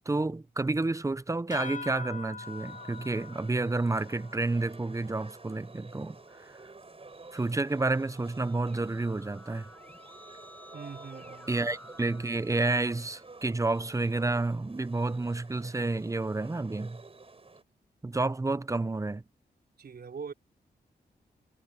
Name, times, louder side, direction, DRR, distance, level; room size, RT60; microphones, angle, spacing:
voice 1, 0.1-6.6 7.3-9.7 11.5-17.0 18.0-19.2, right 2 dB, 20° right, 0.7 m, -30 dB
sound 1, 1.5-6.5, left 5 dB, 50° left, 4.6 m, -45 dB
sound 2, 2.4-17.6, right 3 dB, 35° right, 7.5 m, -52 dB
Keyboard (musical), 7.3-13.9, left 1 dB, 10° left, 6.9 m, -54 dB
voice 2, 10.7-11.6 19.8-20.3, right 5 dB, 65° right, 4.5 m, -42 dB
cardioid pair, 80°, 17 cm